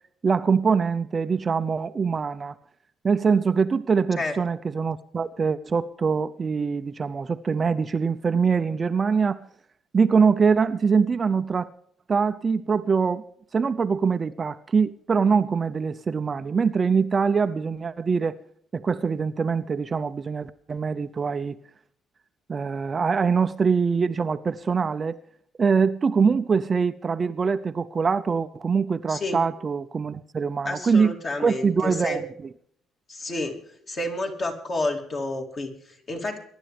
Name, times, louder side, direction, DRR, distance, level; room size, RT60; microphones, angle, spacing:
voice 1, 0.2-2.6 3.0-9.4 9.9-11.7 12.1-13.2 13.5-18.4 18.7-21.6 22.5-25.2 25.6-31.1 31.4-32.2, right 5 dB, 30° right, 0.6 m, -23 dB
voice 2, 29.1-29.4 30.6-32.2 33.1-33.6 33.9-36.4, left 2 dB, 35° left, 2.8 m, -30 dB
23.0 x 11.5 x 3.4 m
cardioid pair, 130°, 0 cm